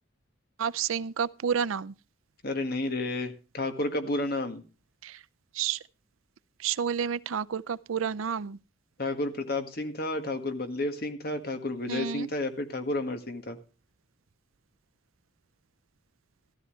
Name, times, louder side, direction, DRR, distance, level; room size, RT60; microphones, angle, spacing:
voice 1, 0.6-1.9 5.0-5.2 5.5-5.8 6.6-8.6 11.9-12.3, right 7 dB, 85° right, 0.5 m, -30 dB
voice 2, 2.4-4.6 9.0-13.6, left 2 dB, 50° left, 1.7 m, -31 dB
14.0 x 13.5 x 3.2 m
head